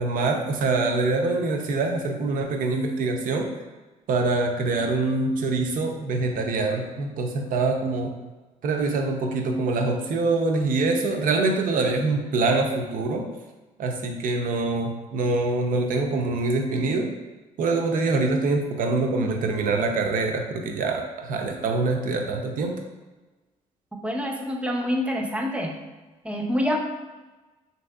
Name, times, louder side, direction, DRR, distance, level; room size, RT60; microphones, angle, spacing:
voice 1, 0.0-3.5 4.1-8.1 8.6-13.3 13.8-17.1 17.6-22.8, right 3 dB, 60° right, 3 dB, 0.4 m, -24 dB
voice 2, 24.0-25.8 26.2-26.8, equal, 10° right, 1 dB, 0.5 m, -26 dB
2.9 x 2.6 x 2.3 m, 1.2 s
supercardioid pair, 65°, 16 cm